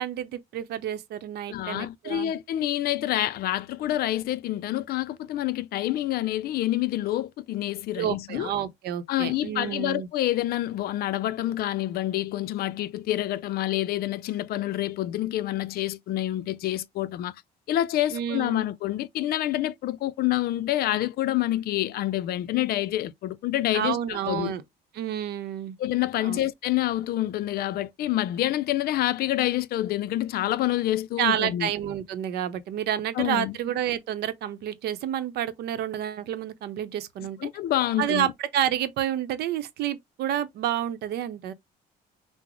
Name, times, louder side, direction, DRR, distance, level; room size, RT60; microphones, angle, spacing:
voice 1, 0.0-2.3 8.0-10.1 18.1-18.7 23.7-24.6 24.9-25.8 26.2-26.4 31.2-37.5 38.0-41.5, right 10 dB, 70° right, 0.7 m, -29 dB
voice 2, 1.5-8.5 9.1-17.3 17.7-24.5 25.8-31.7 33.1-33.6 37.4-38.3, left 14 dB, 65° left, 0.4 m, -27 dB
6.0 x 2.0 x 3.0 m
cardioid pair, 110°, 17 cm